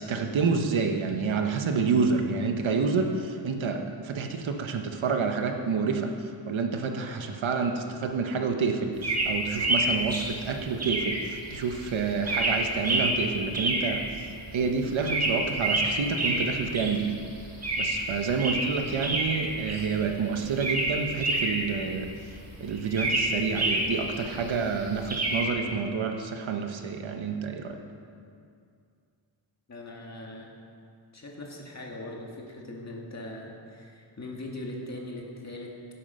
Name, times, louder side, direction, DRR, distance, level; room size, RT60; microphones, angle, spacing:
voice 1, 0.0-6.1 6.5-14.3 14.5-17.2 17.8-22.1 22.6-27.8, right 5 dB, 85° right, 5 dB, 1.2 m, -28 dB
sound 1, 9.0-25.4, right 1 dB, 35° right, 2.0 m, -29 dB
voice 2, 29.7-30.5 31.1-35.7, left 1 dB, 35° left, -1 dB, 2.0 m, -40 dB
15.5 x 8.6 x 5.6 m, 2.4 s
wide cardioid pair, 155°, 46 cm